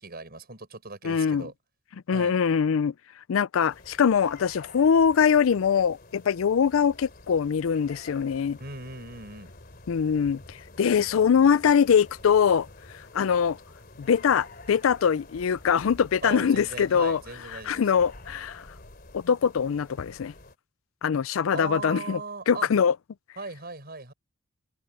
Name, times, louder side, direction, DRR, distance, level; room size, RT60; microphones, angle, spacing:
voice 1, 0.0-1.5 2.1-2.4 8.6-9.5 16.2-17.8 21.5-22.7 23.4-24.1, right 3 dB, 50° right, 5.9 m, -38 dB
voice 2, 1.0-1.5 2.1-2.9 3.3-8.6 9.9-12.7 12.9-13.6 14.0-17.2 17.5-18.7 19.1-20.3 21.0-22.2 22.5-22.9, left 7 dB, 80° left, 0.4 m, -23 dB
sound 1, 3.7-20.6, left 2 dB, 50° left, 3.1 m, -49 dB
open air
head